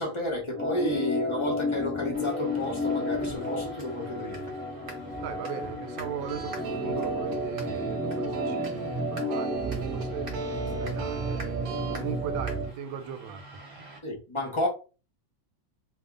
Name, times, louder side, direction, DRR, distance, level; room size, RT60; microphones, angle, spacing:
voice 1, 0.0-4.5 14.0-14.7, left 1 dB, 30° left, 0.5 m, -31 dB
Organ, 0.5-12.7, left 1 dB, ahead, 1.1 m, -32 dB
sound 1, 2.1-14.0, right 2 dB, 35° right, 1.0 m, -47 dB
voice 2, 5.2-10.4 10.8-13.6, right 8 dB, 85° right, 1.4 m, -39 dB
sound 2, 6.2-12.0, right 6 dB, 65° right, 1.0 m, -38 dB
2.7 x 2.6 x 3.7 m
omnidirectional pair, 2.1 m